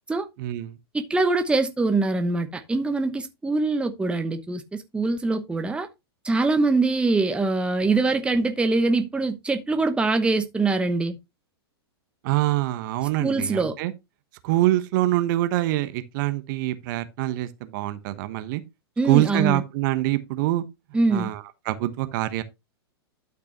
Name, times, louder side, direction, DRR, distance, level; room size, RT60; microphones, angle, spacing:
voice 1, 0.4-0.8 12.2-13.9 14.4-18.6 19.0-20.6 21.1-22.4, right 16 dB, 50° right, 1.2 m, -25 dB
voice 2, 0.9-5.9 6.2-11.2 13.2-13.7 19.0-19.6 20.9-21.3, right 3 dB, 10° right, 1.0 m, -23 dB
12.0 x 6.0 x 2.9 m
hypercardioid pair, 105°, 13 cm